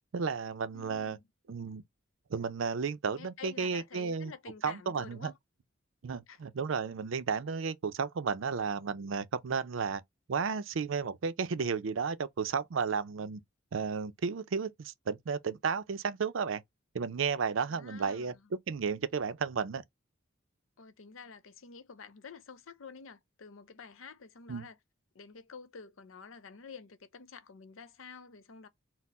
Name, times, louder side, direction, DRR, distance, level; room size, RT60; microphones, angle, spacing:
voice 1, 0.1-1.2 1.5-1.8 2.3-4.3 4.6-5.3 6.0-10.0 10.3-13.4 13.7-16.6 16.9-18.3 18.7-19.8 24.5-24.7, right 5 dB, 70° right, 0.5 m, -33 dB
voice 2, 0.7-1.2 3.2-5.4 6.3-6.4 17.7-18.5 20.8-24.8 25.1-28.7, left 5 dB, 75° left, 0.6 m, -49 dB
4.3 x 2.1 x 4.1 m
head